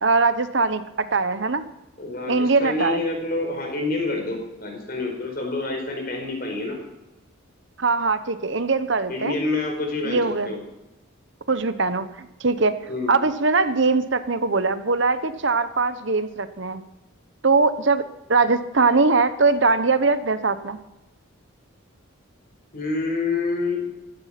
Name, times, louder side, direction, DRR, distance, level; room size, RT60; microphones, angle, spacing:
voice 1, 0.0-1.6 2.3-3.0 7.8-9.4 10.0-10.5 11.5-12.7 13.1-16.8 17.4-20.8, right 3 dB, 60° right, 12 dB, 1.0 m, -21 dB
voice 2, 2.0-6.8 9.1-10.6 12.9-13.2 22.7-23.8, left 3 dB, 45° left, 2 dB, 4.7 m, -27 dB
15.5 x 14.0 x 6.0 m, 0.96 s
head